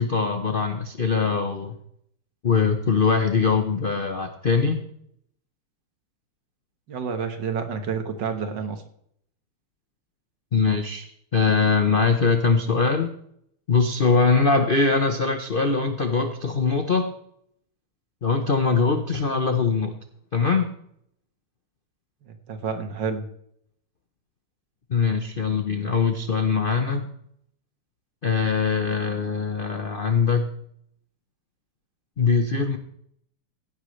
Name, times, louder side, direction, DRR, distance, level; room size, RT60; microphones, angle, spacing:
voice 1, 0.0-1.8 2.4-4.8 10.5-13.1 13.7-17.1 18.2-19.9 20.3-20.7 24.9-27.1 28.2-30.5 32.2-32.8, left 4 dB, 60° left, 7 dB, 0.5 m, -22 dB
voice 2, 6.9-8.8 22.2-23.2, right 6 dB, 60° right, 7 dB, 1.9 m, -29 dB
16.0 x 11.5 x 3.2 m, 0.70 s
omnidirectional pair, 2.3 m